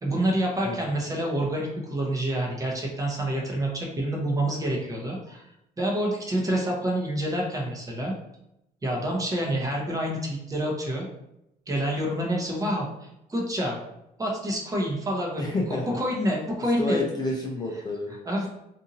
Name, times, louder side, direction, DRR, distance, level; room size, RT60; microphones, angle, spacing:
voice 1, 0.0-5.4 5.8-8.1 8.8-11.1 11.7-13.8 14.2-17.0 18.2-18.5, right 1 dB, 20° right, -1 dB, 0.8 m, -27 dB
voice 2, 15.4-16.0 16.8-18.1, left 2 dB, 25° left, -1 dB, 0.5 m, -29 dB
2.7 x 2.6 x 2.6 m, 0.82 s
cardioid pair, 110°, 17 cm